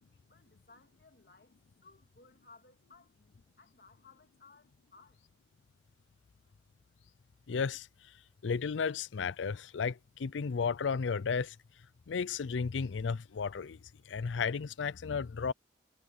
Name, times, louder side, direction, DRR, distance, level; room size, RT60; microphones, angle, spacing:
voice 1, 0.0-1.6 1.8-5.2, left 3 dB, 55° left, 2.2 m, -61 dB
voice 2, 7.5-7.9 8.4-11.6 12.1-13.8 14.1-15.5, left 5 dB, 90° left, 0.5 m, -33 dB
head